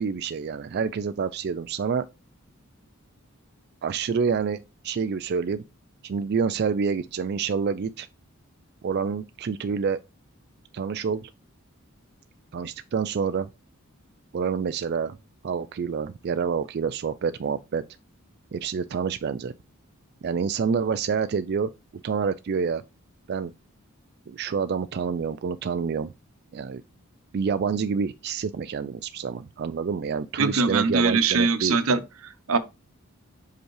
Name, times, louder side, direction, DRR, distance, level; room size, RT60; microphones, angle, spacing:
voice 1, 0.0-2.1 3.8-5.6 6.0-8.1 8.8-10.0 10.7-11.3 12.5-13.5 14.3-15.2 15.4-17.8 18.5-19.5 20.2-21.7 22.0-22.8 23.3-23.5 24.3-26.1 26.5-26.8 27.3-31.8, right 6 dB, 50° right, 0.3 m, -27 dB
voice 2, 30.4-32.6, right 4 dB, 70° right, 0.9 m, -23 dB
5.2 x 5.0 x 4.7 m
head